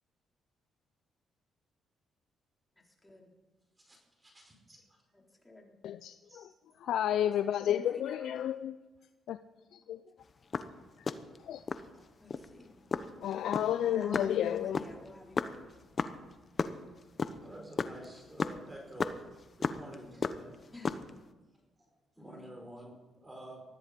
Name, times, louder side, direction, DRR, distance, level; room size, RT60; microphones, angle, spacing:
voice 1, 3.8-4.8 6.3-6.5 6.8-6.9 11.9-12.1 17.4-19.3 19.6-20.6 21.8-23.6, right 1 dB, 20° right, 4.6 m, -49 dB
voice 2, 5.1-5.7 7.4-8.4 12.2-12.8 13.8-15.6 20.7-21.0 22.2-22.6, left 2 dB, 10° left, 4.2 m, -50 dB
voice 3, 5.8-6.5 6.8-8.8 9.3-9.4 9.7-10.0 11.0-11.1 11.5-11.6 13.2-14.8, left 10 dB, 75° left, 0.5 m, -31 dB
sound 1, 10.3-11.9 12.3-12.5 12.9-16.7 17.0-20.0 20.2-21.2, left 5 dB, 40° left, 1.0 m, -34 dB
20.0 x 13.5 x 5.2 m
cardioid pair, 90°, 0 cm